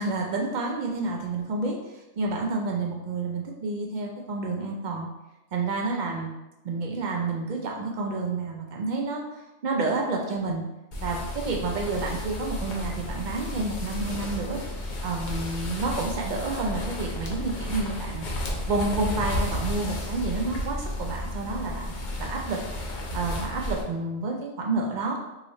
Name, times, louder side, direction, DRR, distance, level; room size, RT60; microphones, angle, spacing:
voice 1, 0.0-1.8 2.2-5.1 5.5-6.3 6.6-10.6 11.0-14.6 15.0-18.2 18.7-21.9 22.2-22.6 23.1-25.2, right 3 dB, 70° right, 0 dB, 0.4 m, -29 dB
sound 1, 10.9-23.8, left 1 dB, 50° left, 0.6 m, -33 dB
3.0 x 2.3 x 4.0 m, 0.99 s
omnidirectional pair, 1.3 m